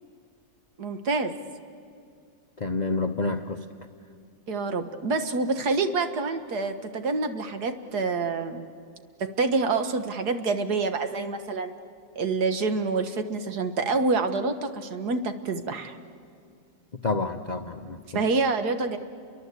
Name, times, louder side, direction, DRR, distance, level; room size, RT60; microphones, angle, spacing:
voice 1, 0.8-1.4 4.5-8.7 9.2-11.7 12.2-16.0 18.1-19.0, right 3 dB, 60° right, 8 dB, 1.7 m, -27 dB
voice 2, 2.6-3.7 17.0-18.3, left 3 dB, 50° left, 6 dB, 0.5 m, -29 dB
29.5 x 23.5 x 8.3 m, 2.3 s
omnidirectional pair, 2.1 m